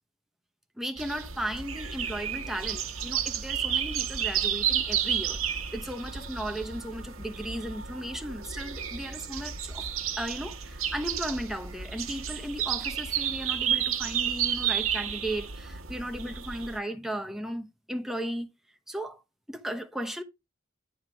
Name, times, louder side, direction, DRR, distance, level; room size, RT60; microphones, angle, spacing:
voice 1, 0.8-5.4 5.7-9.9 10.2-18.5 18.9-19.2 19.5-20.2, right 1 dB, ahead, 0.9 m, -35 dB
sound 1, 1.0-16.8, right 8 dB, 80° right, 1.1 m, -32 dB
9.2 x 3.2 x 6.1 m
head